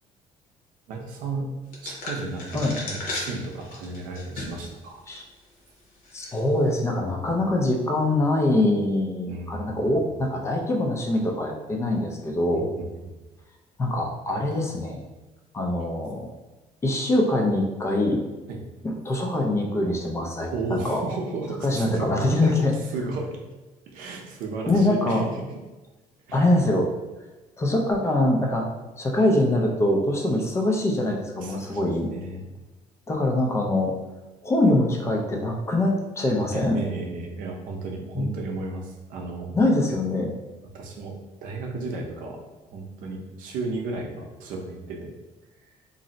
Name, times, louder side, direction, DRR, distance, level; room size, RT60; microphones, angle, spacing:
voice 1, 0.9-1.5 1.8-5.0 9.3-10.1 12.5-12.9 18.5-18.6 20.5-22.1 22.4-22.6 22.9-23.4 23.9-25.5 26.3-26.5 31.4-31.8 32.1-32.5 36.5-39.5 40.7-41.2 41.4-42.4 42.7-45.1, right 3 dB, 80° right, 1 dB, 0.6 m, -33 dB
sound 1, 1.7-4.7 5.1-5.2 6.0-6.4, left 2 dB, 75° left, 0.8 m, -35 dB
voice 2, 6.1-12.7 13.8-15.0 15.5-16.3 16.8-18.2 18.8-21.0 21.6-22.7 24.7-25.2 26.3-26.9 27.6-28.7 29.0-32.1 33.1-33.9 34.4-36.8 38.1-38.3 39.5-40.3, left 1 dB, 20° left, 0 dB, 0.4 m, -23 dB
2.5 x 2.0 x 3.8 m, 1.1 s
cardioid pair, 165°, 14 cm